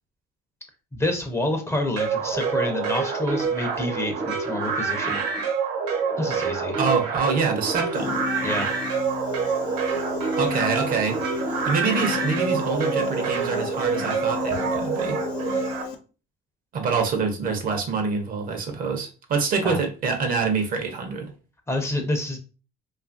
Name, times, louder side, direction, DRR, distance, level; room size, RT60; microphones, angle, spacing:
voice 1, 0.9-5.2 6.2-6.8 8.4-8.7 19.6-19.8 21.7-22.4, left 1 dB, 15° left, 0.6 m, -28 dB
sound 1, 2.0-15.8, right 5 dB, 75° right, 1.0 m, -27 dB
voice 2, 6.8-8.1 10.4-11.2 11.6-15.2 16.7-21.3, right 5 dB, 55° right, 0.7 m, -25 dB
Piano, 7.9-16.0, left 6 dB, 85° left, 0.5 m, -33 dB
2.7 x 2.4 x 2.5 m
cardioid pair, 110°, 17 cm